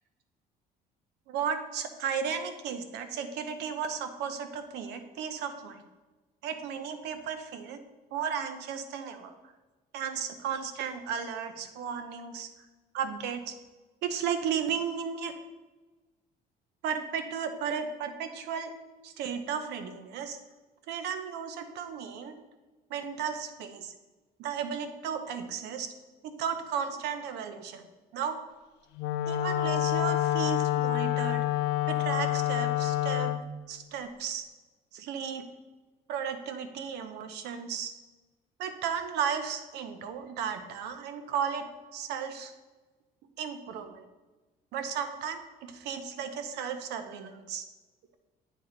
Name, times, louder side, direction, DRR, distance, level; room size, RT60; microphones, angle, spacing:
voice 1, 1.3-5.8 6.4-7.8 8.1-9.5 9.9-12.5 12.9-13.5 14.0-15.3 16.8-18.7 19.0-20.4 20.9-22.4 22.9-23.9 24.4-25.9 26.2-27.8 28.1-28.4 29.3-31.4 31.9-33.3 33.7-34.4 34.9-35.4 36.1-37.9 38.6-41.6 41.9-42.5 43.4-44.1 44.7-47.7, right 7 dB, 80° right, 9 dB, 0.7 m, -34 dB
Wind instrument woodwind instrument, 29.0-33.5, left 13 dB, 80° left, 0.5 m, -27 dB
8.3 x 3.8 x 4.4 m, 1.2 s
cardioid pair, 110°, 17 cm